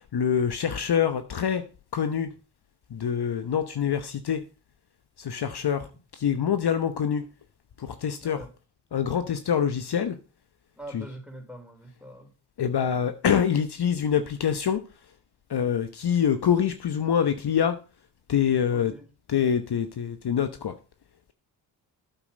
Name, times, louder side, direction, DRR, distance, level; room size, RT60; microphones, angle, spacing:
voice 1, 0.1-1.6 1.9-2.3 2.9-4.4 5.2-5.9 6.2-7.2 7.8-8.4 8.9-10.1 10.9-11.0 12.6-14.8 15.5-17.8 18.3-18.9 19.3-20.7, left 8 dB, 50° left, 1.0 m, -25 dB
voice 2, 8.2-8.5 10.8-12.3 18.7-19.1, right 1 dB, ahead, 3.5 m, -43 dB
8.9 x 7.2 x 5.3 m
supercardioid pair, 55°, 49 cm